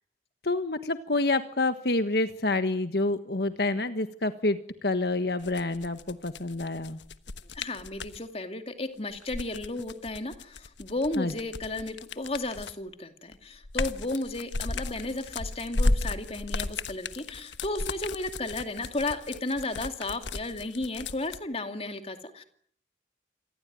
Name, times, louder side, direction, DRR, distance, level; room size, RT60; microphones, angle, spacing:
voice 1, 0.4-7.0 11.2-11.3, left 2 dB, 60° left, 9 dB, 1.4 m, -28 dB
sound 1, 5.4-8.2 9.1-12.9 13.3-21.4, left 2 dB, 90° left, 1.3 m, -34 dB
voice 2, 7.5-22.4, left 2 dB, 35° left, 7 dB, 2.5 m, -34 dB
27.5 x 20.0 x 9.4 m, 0.63 s
head